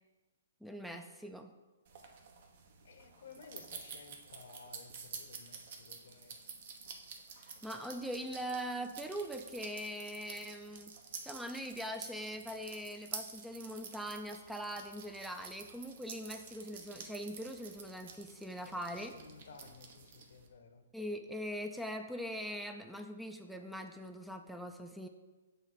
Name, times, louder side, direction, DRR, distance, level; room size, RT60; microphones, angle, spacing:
voice 1, 0.6-1.5 7.6-10.9 11.2-19.1 20.9-25.1, equal, ahead, 6 dB, 0.4 m, -42 dB
sound 1, 1.9-20.5, right 5 dB, 55° right, 1.0 m, -50 dB
voice 2, 2.8-6.4 18.6-20.9, left 5 dB, 65° left, 8 dB, 0.8 m, -56 dB
7.1 x 3.3 x 5.8 m, 1.2 s
hypercardioid pair, 135°, 0 cm